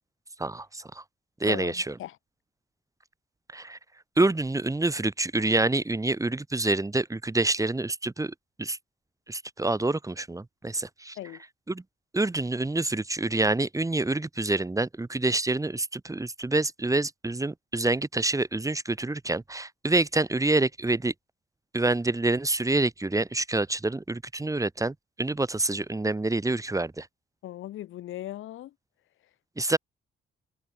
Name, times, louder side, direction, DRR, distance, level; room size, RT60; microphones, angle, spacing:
voice 1, 0.4-1.0 1.4-1.9 3.5-3.8 4.2-8.8 9.3-11.2 11.7-11.8 12.1-21.1 21.7-27.1 29.6-29.8, right 2 dB, 15° right, 5.0 m, -27 dB
voice 2, 1.4-2.2 11.1-11.4 27.4-28.7, left 13 dB, 80° left, 6.8 m, -38 dB
cardioid pair, 90°, 20 cm